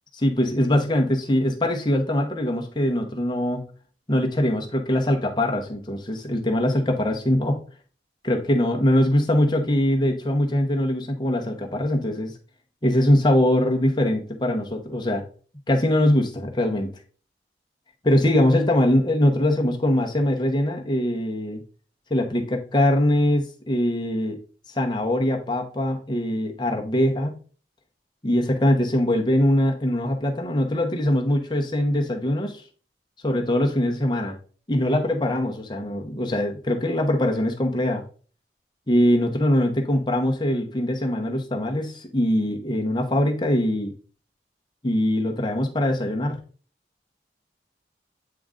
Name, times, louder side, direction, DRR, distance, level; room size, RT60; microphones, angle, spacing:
voice 1, 0.2-3.6 4.1-7.6 8.2-12.3 12.8-15.2 15.7-16.9 18.0-21.6 22.1-24.4 24.7-27.4 28.2-32.6 33.2-34.4 34.7-38.0 38.9-43.9 44.8-46.4, left 1 dB, 25° left, 2 dB, 1.0 m, -22 dB
8.6 x 3.8 x 3.7 m, 0.40 s
head